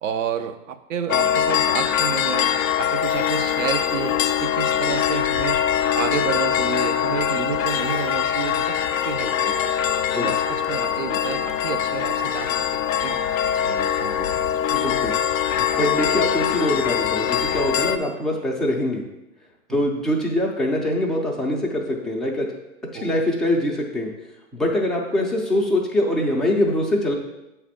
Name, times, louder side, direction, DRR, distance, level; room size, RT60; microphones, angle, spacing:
voice 1, 0.0-5.6 5.9-9.7 10.1-12.5 12.8-13.2 13.6-14.4 17.8-17.9 19.7-19.9 22.9-23.2, right 8 dB, 65° right, 9 dB, 0.7 m, -30 dB
sound 1, 1.1-18.0, left 9 dB, 75° left, 0.5 m, -23 dB
voice 2, 14.7-15.1 15.6-19.0 19.7-22.5 22.9-24.1 24.5-27.1, left 1 dB, ahead, -3 dB, 0.4 m, -23 dB
7.0 x 3.3 x 4.9 m, 0.92 s
hypercardioid pair, 115°, 41 cm